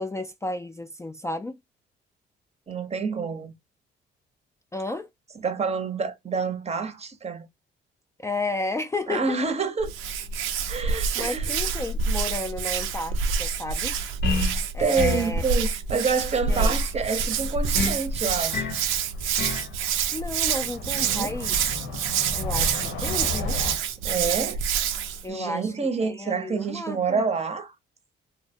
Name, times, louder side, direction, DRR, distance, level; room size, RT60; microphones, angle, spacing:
voice 1, 0.0-1.6 4.7-5.1 8.2-9.4 11.2-13.9 14.7-15.4 16.5-16.7 20.1-21.6 22.4-23.6 25.2-25.7 26.0-27.2, left 2 dB, 15° left, 0.4 m, -32 dB
voice 2, 2.7-3.5 5.4-7.5 9.1-9.9 10.7-11.5 14.8-18.8 20.9-21.3 24.0-24.6 25.3-27.7, right 5 dB, 30° right, 0.7 m, -28 dB
Hands, 9.8-25.2, right 6 dB, 90° right, 0.5 m, -27 dB
sound 1, 14.2-14.6 15.0-15.3 17.8-18.0 18.5-18.8 19.4-19.7, left 3 dB, 55° left, 0.7 m, -27 dB
Cricket / Motor vehicle (road), 16.6-23.8, left 4 dB, 85° left, 1.0 m, -37 dB
2.8 x 2.1 x 2.6 m
cardioid pair, 90°, 20 cm